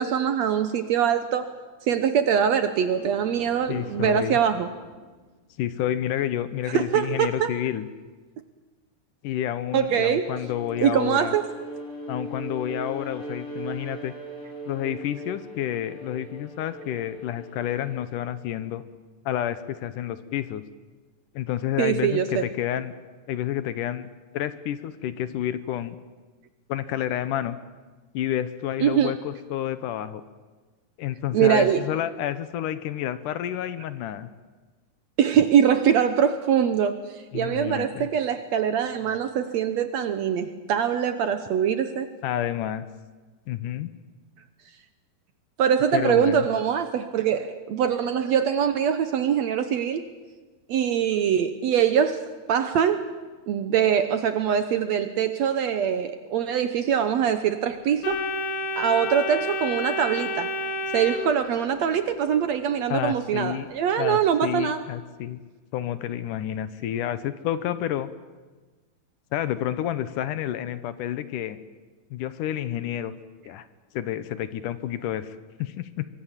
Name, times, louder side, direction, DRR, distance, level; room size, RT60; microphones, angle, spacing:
voice 1, 0.0-1.5 1.8-4.7 6.7-7.6 9.7-10.3 10.8-11.5 21.8-22.5 28.8-29.1 31.3-31.9 35.2-42.1 45.6-50.1 50.7-52.2 52.5-53.2 53.5-58.2 58.8-60.5 60.9-64.8, right 8 dB, 70° right, 9 dB, 1.8 m, -23 dB
sound 1, 2.4-5.8 6.2-6.6, right 2 dB, 45° right, 7.9 m, -49 dB
voice 2, 3.7-4.4 5.6-7.9 9.2-11.3 12.1-14.1 14.7-18.8 19.3-20.6 21.3-22.9 23.3-24.1 24.3-26.0 26.7-27.6 28.1-30.2 31.0-34.3 37.3-38.1 42.2-42.9 43.5-43.9 45.9-46.5 62.9-63.7 64.0-65.4 65.7-68.1 69.3-71.6 72.1-73.1 73.5-73.7 73.9-76.1, left 11 dB, 75° left, 13 dB, 2.4 m, -29 dB
Bowed string instrument, 9.9-18.3, right 1 dB, 10° left, 6.9 m, -39 dB
Organ, 58.0-62.0, left 1 dB, 45° left, 2.0 m, -30 dB
25.0 x 22.5 x 7.4 m, 1.3 s
omnidirectional pair, 3.9 m